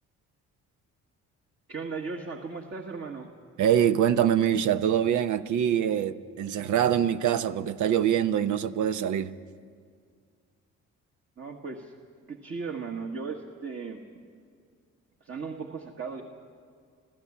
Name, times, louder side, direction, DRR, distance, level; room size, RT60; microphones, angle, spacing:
voice 1, 1.7-3.3 11.4-11.9 12.3-14.2 15.2-16.2, right 4 dB, 45° right, 1.7 m, -37 dB
voice 2, 3.6-9.3, right 9 dB, 75° right, 0.8 m, -24 dB
25.5 x 15.0 x 8.6 m
cardioid pair, 90°, 30 cm